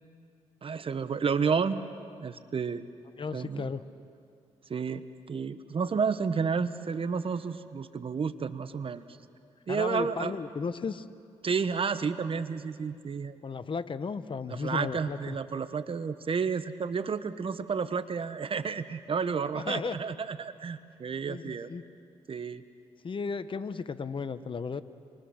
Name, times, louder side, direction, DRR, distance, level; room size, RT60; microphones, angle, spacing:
voice 1, 0.6-1.9 2.2-2.8 3.3-3.7 4.7-9.0 9.7-10.3 11.4-13.4 14.5-21.7 22.3-22.6, right 5 dB, 45° right, 12 dB, 1.2 m, -31 dB
voice 2, 3.2-3.8 9.7-11.1 13.4-15.4 19.5-20.0 21.3-21.8 23.0-24.8, left 5 dB, 45° left, 13 dB, 1.0 m, -35 dB
28.0 x 23.0 x 6.5 m, 2.3 s
supercardioid pair, 60°, 12 cm